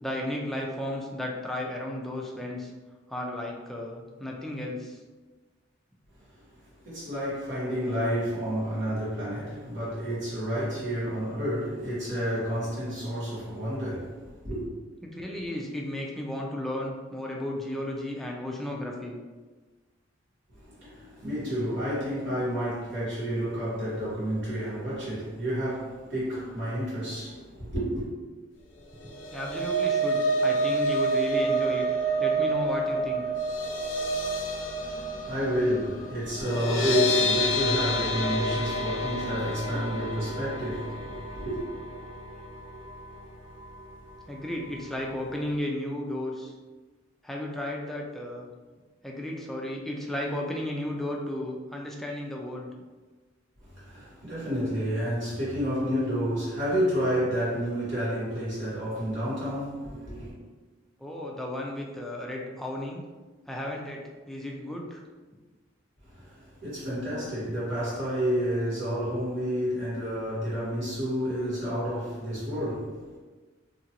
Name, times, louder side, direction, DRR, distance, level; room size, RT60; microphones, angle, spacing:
voice 1, 0.0-2.7 3.1-5.0 15.0-19.2 29.0-31.9 32.2-33.3 44.3-46.5 47.2-48.5 49.0-52.7 61.0-63.0 63.5-65.0, left 1 dB, ahead, 0.3 m, -34 dB
voice 2, 6.8-14.7 20.5-28.1 34.7-41.6 53.6-60.3 66.0-73.2, equal, 65° right, 1.5 m, -30 dB
sound 1, 29.0-43.2 43.6-43.8 44.1-44.2, right 1 dB, 65° left, 0.5 m, -29 dB
2.8 x 2.4 x 2.8 m
head